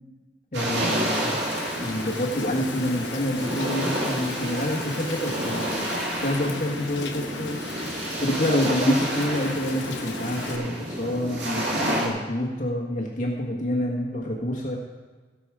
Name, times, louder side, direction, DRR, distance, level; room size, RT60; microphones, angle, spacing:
voice 1, 0.5-1.4 1.7-5.8 6.1-7.6 8.2-14.8, left 1 dB, 45° left, -3 dB, 1.5 m, -27 dB
sound 1, 0.5-12.1, right 1 dB, 70° right, 2.3 m, -30 dB
Rain, 0.9-10.6, left 5 dB, 90° left, 1.0 m, -38 dB
16.5 x 6.1 x 4.9 m, 1.3 s
head